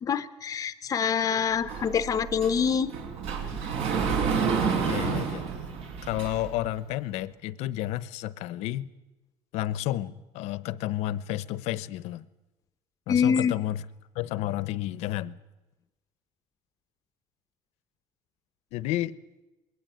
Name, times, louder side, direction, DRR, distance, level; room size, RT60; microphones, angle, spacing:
voice 1, 0.0-2.9 13.1-13.5, left 7 dB, 30° left, 13 dB, 0.8 m, -25 dB
Sliding door, 1.7-6.6, right 6 dB, 65° right, 4.1 m, -29 dB
voice 2, 4.9-5.5 6.0-8.9 9.5-12.3 13.1-13.8 14.1-15.4 18.7-19.2, left 14 dB, 70° left, 17 dB, 0.9 m, -31 dB
21.0 x 18.0 x 9.2 m, 1.1 s
cardioid pair, 160°, 12 cm